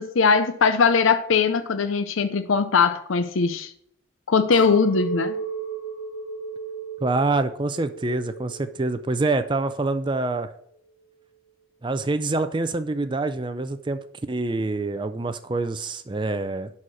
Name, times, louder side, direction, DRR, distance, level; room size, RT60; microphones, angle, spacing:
voice 1, 0.0-3.7 4.3-5.3, left 5 dB, 75° left, 0.5 m, -20 dB
Chink clink, 4.5-8.9 9.1-9.9, right 4 dB, 10° left, 2.4 m, -34 dB
voice 2, 7.0-10.5 11.8-16.7, right 2 dB, 25° right, 0.4 m, -26 dB
11.0 x 4.2 x 6.2 m
head